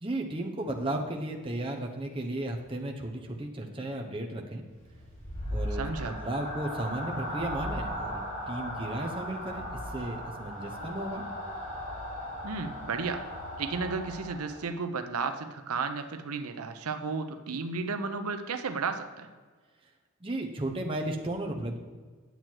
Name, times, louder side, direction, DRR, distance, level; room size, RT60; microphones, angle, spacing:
voice 1, 0.0-4.6 5.5-11.2 20.2-21.8, right 1 dB, 25° right, 1 dB, 0.9 m, -34 dB
sound 1, 4.7-14.7, equal, 30° left, 3.4 m, -37 dB
voice 2, 5.7-6.2 12.4-13.2 13.6-19.3, right 4 dB, 85° right, 9 dB, 0.7 m, -33 dB
9.3 x 7.7 x 4.5 m, 1.4 s
head